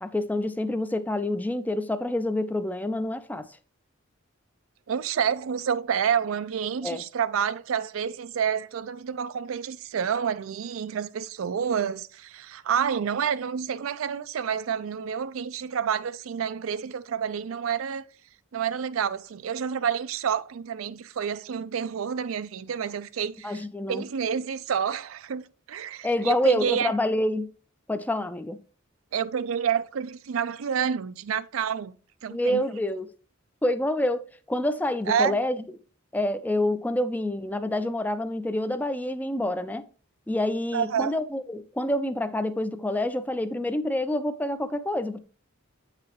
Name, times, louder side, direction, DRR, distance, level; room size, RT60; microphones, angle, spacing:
voice 1, 0.0-3.5 6.8-7.0 23.4-24.0 26.0-27.5 27.9-28.6 32.3-33.1 33.6-35.6 36.1-39.9 40.3-45.2, left 1 dB, 10° left, 0.4 m, -27 dB
voice 2, 4.9-18.1 18.5-23.6 23.9-26.9 29.1-32.6 35.1-35.4 40.7-41.2, right 7 dB, 85° right, 0.4 m, -29 dB
8.3 x 4.9 x 3.0 m
head